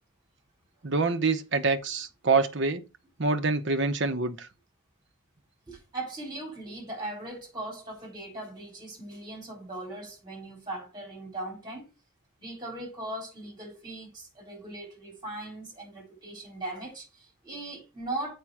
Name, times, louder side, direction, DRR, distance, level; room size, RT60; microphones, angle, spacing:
voice 1, 0.8-2.8 3.2-4.5, right 3 dB, 55° right, 0.9 m, -26 dB
voice 2, 5.7-11.9 12.4-18.3, right 2 dB, 20° right, 3.8 m, -39 dB
7.5 x 5.4 x 4.8 m
head